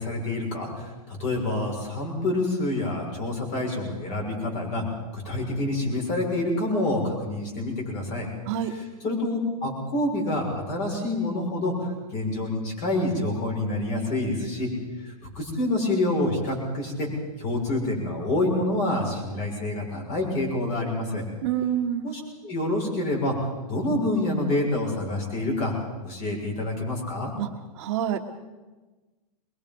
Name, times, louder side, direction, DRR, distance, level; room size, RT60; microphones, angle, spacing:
voice 1, 0.0-4.8 5.1-8.3 8.7-8.8 9.0-11.7 12.1-14.7 15.4-17.1 17.4-21.2 22.0-23.3 23.7-25.7 26.0-27.3, left 1 dB, 35° left, 1 dB, 6.6 m, -27 dB
voice 2, 21.4-22.1 27.4-27.5 27.8-28.2, right 10 dB, 45° right, 2 dB, 1.5 m, -26 dB
23.0 x 22.0 x 5.5 m, 1.2 s
hypercardioid pair, 150°, 20 cm